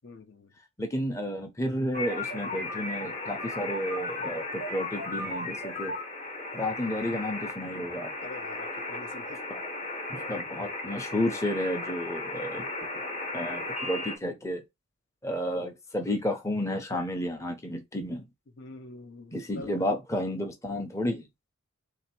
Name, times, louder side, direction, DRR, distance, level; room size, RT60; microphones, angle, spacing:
voice 1, 0.0-0.5 8.2-9.4 18.6-19.7, left 3 dB, 55° left, 0.7 m, -45 dB
voice 2, 0.8-6.0 6.5-8.1 9.5-9.7 10.1-12.7 13.3-14.6 15.2-18.3 19.3-21.3, left 1 dB, 15° left, 0.7 m, -32 dB
sound 1, 1.9-14.2, left 2 dB, 35° left, 1.0 m, -35 dB
3.4 x 2.8 x 4.3 m
head